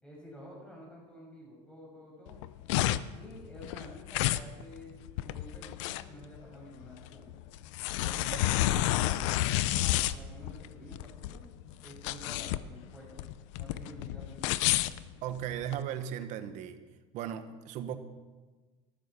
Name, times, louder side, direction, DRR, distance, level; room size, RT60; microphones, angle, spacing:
voice 1, 0.0-2.4 3.1-4.9 5.2-7.3 7.9-9.3 9.8-11.4 11.8-14.7, equal, 5° left, -4 dB, 6.2 m, -50 dB
sound 1, 2.3-15.8, left 15 dB, 80° left, 0.6 m, -31 dB
voice 2, 15.2-16.8 17.1-18.0, right 10 dB, 55° right, 10 dB, 1.3 m, -36 dB
14.0 x 12.5 x 6.0 m, 1.3 s
cardioid pair, 140°, 15 cm